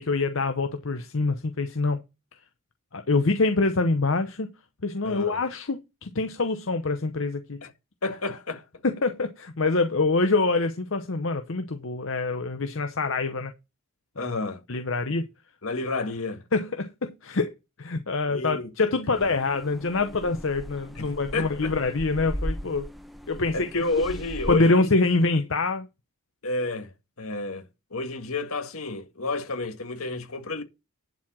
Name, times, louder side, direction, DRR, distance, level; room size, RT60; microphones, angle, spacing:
voice 1, 0.0-2.0 2.9-4.5 4.8-7.6 8.8-13.5 14.2-14.3 14.7-15.3 16.5-17.5 17.8-22.9 23.3-23.8 24.5-25.9, left 3 dB, 60° left, 0.8 m, -25 dB
voice 2, 5.0-5.4 7.6-7.7 8.0-8.6 14.2-14.6 15.6-16.4 18.3-18.7 19.1-19.2 21.0-21.7 23.5-25.3 26.4-26.9 27.2-27.6 27.9-30.6, left 3 dB, 80° left, 1.8 m, -30 dB
sound 1, 19.1-24.6, equal, ahead, 0.9 m, -37 dB
11.0 x 4.7 x 6.2 m
head